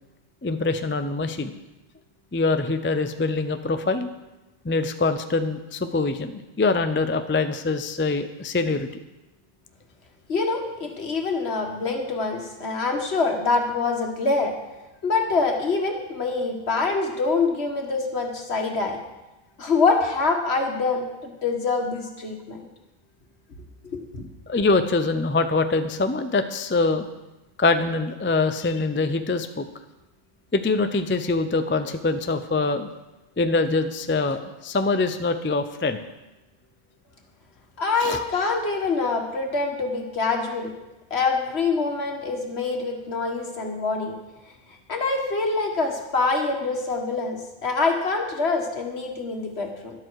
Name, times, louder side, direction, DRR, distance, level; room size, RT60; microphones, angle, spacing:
voice 1, 0.4-1.5 2.3-4.1 4.6-8.9 24.5-27.1 27.6-29.7 30.5-32.9 33.4-36.0 38.0-38.2, left 3 dB, 15° left, 9 dB, 0.4 m, -24 dB
voice 2, 10.3-14.5 15.0-19.0 19.6-22.6 23.8-24.2 37.8-40.7 41.1-44.1 44.9-49.9, left 4 dB, 65° left, 3 dB, 1.9 m, -25 dB
12.5 x 11.5 x 4.7 m, 1.0 s
omnidirectional pair, 1.1 m